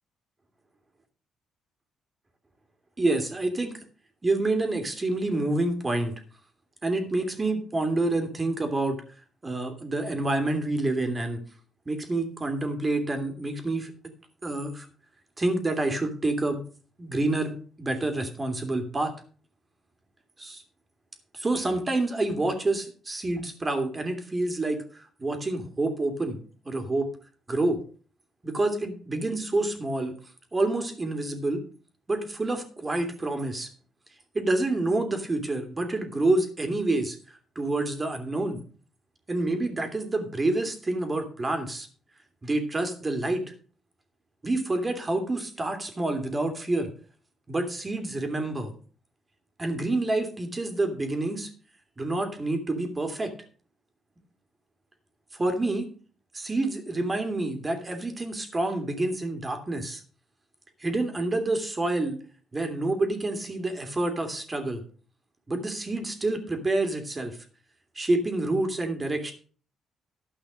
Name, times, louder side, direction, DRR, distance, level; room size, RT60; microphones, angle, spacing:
voice 1, 3.0-3.8 4.2-6.1 6.8-9.0 9.4-11.4 11.9-13.9 14.4-14.9 15.4-16.6 17.0-19.1 20.4-20.6 21.3-26.4 26.6-27.1 27.5-27.8 28.4-30.1 30.5-31.6 32.1-33.7 34.3-38.6 39.3-41.9 42.4-43.4 44.4-46.9 47.5-48.7 49.6-51.5 52.0-53.3 55.4-55.9 56.3-60.0 60.8-62.2 62.5-64.8 65.5-67.4 67.9-69.3, right 2 dB, 25° right, 5 dB, 2.8 m, -28 dB
13.0 x 5.6 x 6.3 m, 0.43 s
cardioid pair, 90°, 0 cm